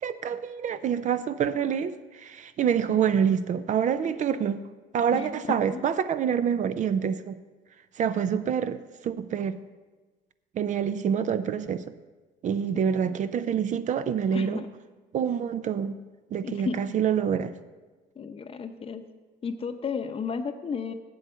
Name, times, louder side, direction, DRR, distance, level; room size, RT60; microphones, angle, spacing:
voice 1, 0.0-4.6 4.9-7.4 8.0-9.6 10.5-11.8 12.4-14.6 15.1-15.9 16.3-17.5, right 8 dB, 45° right, 13 dB, 0.5 m, -26 dB
voice 2, 5.1-5.8 12.7-13.2 14.3-14.7 16.4-16.8 18.2-19.0 19.4-20.9, left 5 dB, 35° left, 9 dB, 0.8 m, -33 dB
8.1 x 7.9 x 6.2 m, 1.3 s
cardioid pair, 110°, 17 cm